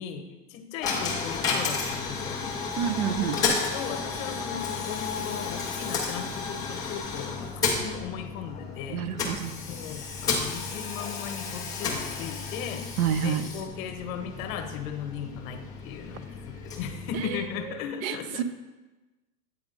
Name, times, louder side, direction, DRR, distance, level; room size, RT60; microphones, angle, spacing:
voice 1, 0.0-2.5 3.4-12.9 13.2-18.4, left 7 dB, 60° left, 6 dB, 1.0 m, -37 dB
Coin (dropping), 0.8-17.8, left 5 dB, 10° left, 0.3 m, -32 dB
voice 2, 2.8-3.6 8.9-9.6 13.0-13.5 18.0-18.4, right 9 dB, 60° right, 11 dB, 0.7 m, -28 dB
8.6 x 3.7 x 3.8 m, 1.2 s
hypercardioid pair, 130°, 47 cm